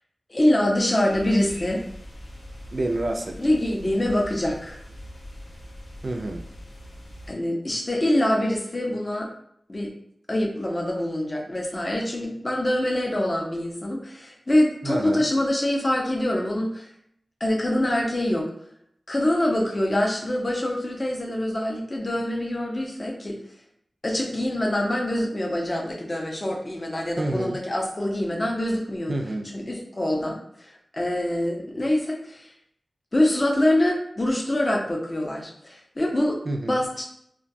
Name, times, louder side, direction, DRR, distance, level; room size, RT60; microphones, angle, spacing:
voice 1, 0.3-1.8 3.4-4.8 7.3-9.3 9.7-9.9 10.3-16.9 17.4-18.5 19.1-23.4 24.0-29.1 29.5-32.5 33.1-36.4 36.7-37.0, left 1 dB, 35° left, 0 dB, 0.5 m, -25 dB
sound 1, 1.1-7.3, equal, 85° left, 0.6 m, -42 dB
voice 2, 2.7-3.4 6.0-6.4 14.8-15.3 27.2-27.6 29.1-29.5 36.4-36.8, right 2 dB, 50° right, 2 dB, 0.3 m, -28 dB
2.2 x 2.2 x 2.6 m, 0.70 s
wide cardioid pair, 90°, 0 cm